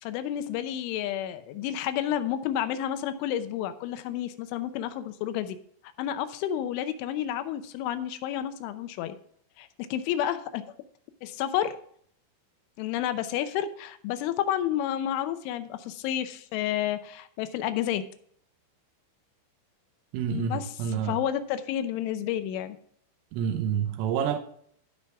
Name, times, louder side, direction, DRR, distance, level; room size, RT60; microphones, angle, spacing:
voice 1, 0.0-5.6 6.0-9.2 9.6-10.6 11.2-11.8 12.8-18.0 20.3-20.7 21.0-22.8, left 11 dB, 80° left, 3.1 m, -30 dB
voice 2, 20.1-21.2 23.3-24.4, right 8 dB, 85° right, 3.4 m, -28 dB
16.5 x 5.6 x 3.5 m
omnidirectional pair, 5.7 m